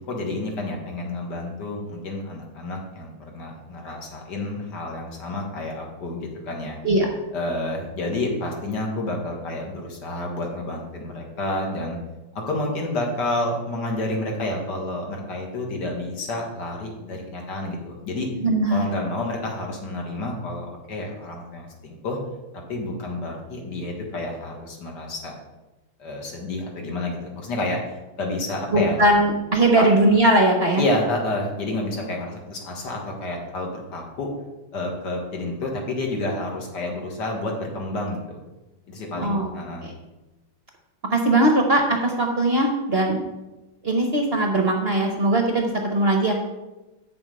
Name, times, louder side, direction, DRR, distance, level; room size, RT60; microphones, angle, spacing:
voice 1, 0.1-6.8 7.3-12.0 12.5-18.3 18.7-22.2 22.7-25.3 26.0-29.0 29.8-29.9 30.8-34.3 34.7-38.4 38.9-39.9, left 2 dB, 60° left, 0 dB, 2.2 m, -29 dB
voice 2, 18.4-18.9 28.7-30.8 39.2-39.5 39.8-39.9 41.1-43.2 43.8-46.3, right 1 dB, 50° right, 2 dB, 0.7 m, -20 dB
8.4 x 7.0 x 5.3 m, 1.1 s
omnidirectional pair, 2.2 m